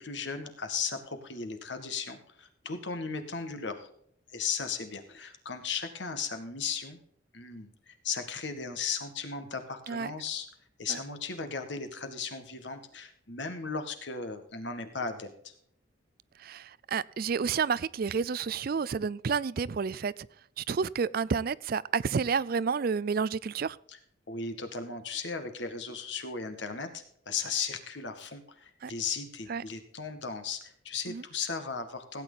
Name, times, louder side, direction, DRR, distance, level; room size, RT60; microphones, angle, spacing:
voice 1, 0.0-3.9 4.3-7.0 7.3-10.5 10.8-15.5 23.9-24.0 24.3-32.2, left 5 dB, 65° left, 1.9 m, -36 dB
voice 2, 16.4-20.1 20.6-23.8 28.8-28.9 29.5-29.6 31.1-31.2, right 5 dB, 50° right, 0.4 m, -30 dB
16.5 x 9.0 x 4.0 m
head